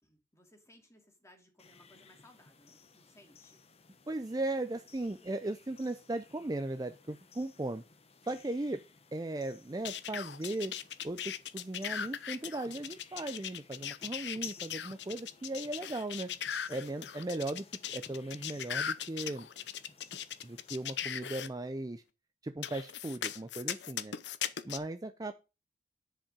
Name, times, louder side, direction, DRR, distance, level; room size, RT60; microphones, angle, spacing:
voice 1, 0.0-3.6, left 1 dB, 15° left, 2.5 m, -62 dB
sound 1, 1.6-21.2, left 6 dB, 35° left, 0.9 m, -56 dB
voice 2, 4.1-7.8 8.3-8.8 9.1-10.7 11.0-16.3 16.7-19.5 20.4-22.0 22.4-24.1 24.6-25.3, right 2 dB, 20° right, 0.5 m, -37 dB
sound 2, 9.9-21.5 22.6-24.8, left 9 dB, 80° left, 0.7 m, -38 dB
10.0 x 5.4 x 5.1 m
head